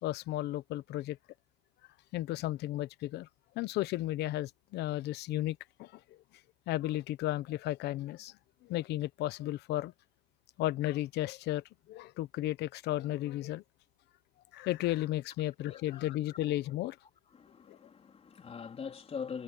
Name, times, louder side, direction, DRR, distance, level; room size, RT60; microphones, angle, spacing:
voice 1, 0.0-1.2 2.1-3.3 3.6-6.0 6.7-8.3 8.6-9.9 10.6-11.6 11.9-13.6 14.5-17.0 17.7-17.8, left 15 dB, 80° left, 1.0 m, -34 dB
voice 2, 15.6-16.0 17.3-19.4, left 6 dB, 35° left, 3.9 m, -42 dB
cardioid pair, 110°, 17 cm